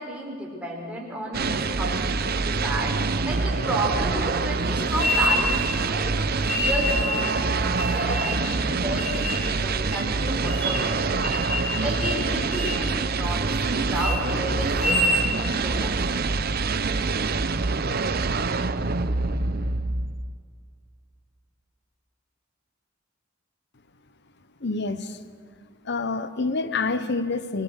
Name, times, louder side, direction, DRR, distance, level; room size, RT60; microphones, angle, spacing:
voice 1, 0.0-15.0 15.3-16.1, right 1 dB, 5° right, -3 dB, 5.0 m, -32 dB
sound 1, 1.3-20.3, right 3 dB, 50° right, 0.7 m, -26 dB
sound 2, 5.0-5.8 6.5-7.3 7.8-8.5 9.0-9.5 9.9-10.0 10.5-10.9 11.2-11.7 12.0-12.2 12.5-12.8 13.2-13.7 13.9-14.2 14.7-15.3, left 1 dB, 40° left, 4.6 m, -27 dB
sound 3, 6.0-8.4 8.7-8.8, right 4 dB, 75° right, 4.6 m, -35 dB
voice 2, 24.6-25.2 25.8-27.6, left 3 dB, 55° left, 11 dB, 1.0 m, -27 dB
24.0 x 18.0 x 6.6 m, 2.1 s
head